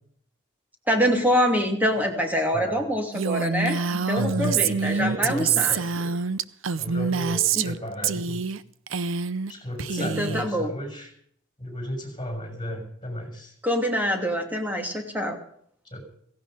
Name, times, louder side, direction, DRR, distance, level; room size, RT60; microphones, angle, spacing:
voice 1, 0.9-5.7 7.5-7.7 10.0-10.7 13.6-15.4, equal, 10° right, 3 dB, 2.7 m, -25 dB
voice 2, 2.5-2.9 4.1-6.4 6.7-8.5 9.5-11.1 11.6-13.5 15.8-16.0, equal, 25° left, 4 dB, 6.1 m, -34 dB
Female speech woman speaking, 3.1-7.8 8.0-8.6 8.9-9.5 9.8-10.4, right 6 dB, 80° right, 0.7 m, -26 dB
16.5 x 16.5 x 5.1 m, 0.64 s
head